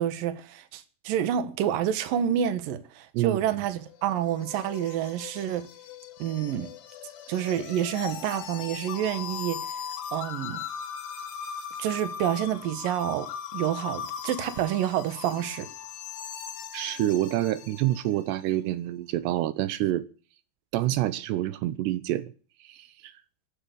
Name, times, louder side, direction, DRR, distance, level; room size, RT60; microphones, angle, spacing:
voice 1, 0.0-5.7 6.2-6.7 7.3-9.8 10.1-10.6 11.8-15.7, right 10 dB, 65° right, 2.9 m, -28 dB
sound 1, 3.6-18.2, left 8 dB, 80° left, 3.9 m, -39 dB
voice 2, 16.7-20.1 20.7-22.3 22.6-23.1, right 14 dB, 85° right, 3.0 m, -27 dB
15.5 x 12.0 x 6.7 m
omnidirectional pair, 4.8 m